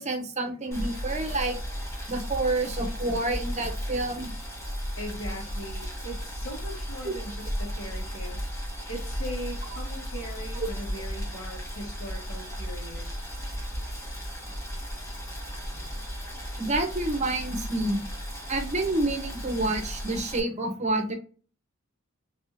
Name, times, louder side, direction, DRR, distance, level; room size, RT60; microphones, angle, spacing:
voice 1, 0.0-1.6 2.1-4.3 7.0-7.1 10.6-10.7 16.6-18.1 18.5-21.1, right 2 dB, 35° right, 4 dB, 0.8 m, -28 dB
Boiling, 0.7-20.4, equal, 15° left, 1.0 m, -35 dB
voice 2, 5.0-8.4 8.9-13.1, equal, 70° left, -3 dB, 1.8 m, -40 dB
3.5 x 3.3 x 2.7 m, 0.37 s
head